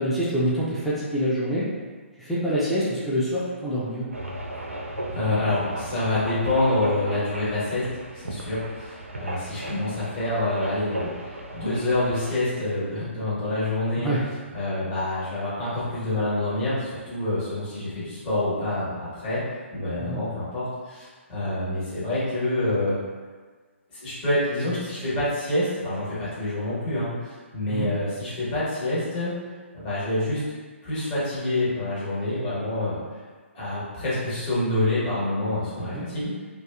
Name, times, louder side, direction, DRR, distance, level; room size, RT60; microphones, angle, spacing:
voice 1, 0.0-1.6 2.2-4.1 14.0-14.2 20.0-20.2 27.7-27.9 35.8-36.0, equal, ahead, -9 dB, 0.3 m, -26 dB
sound 1, 4.1-12.3, right 1 dB, 80° right, 0.4 m, -36 dB
voice 2, 5.1-14.1 14.5-19.4 19.7-23.0 23.9-29.4 29.7-30.4 30.8-33.0 33.5-36.3, left 1 dB, 35° left, -11 dB, 1.2 m, -27 dB
2.6 x 2.2 x 2.3 m, 1.5 s
figure-of-eight pair, 130°, 7 cm